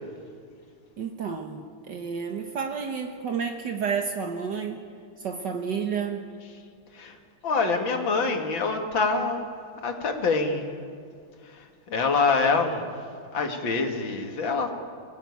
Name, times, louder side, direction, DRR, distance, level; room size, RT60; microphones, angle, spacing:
voice 1, 1.0-4.8 5.2-6.3, right 6 dB, 60° right, 4 dB, 1.8 m, -31 dB
voice 2, 7.4-9.5 9.8-10.7 11.5-12.9 13.3-14.7, left 4 dB, 70° left, 4 dB, 2.6 m, -25 dB
24.0 x 16.5 x 9.4 m, 2.2 s
omnidirectional pair, 2.2 m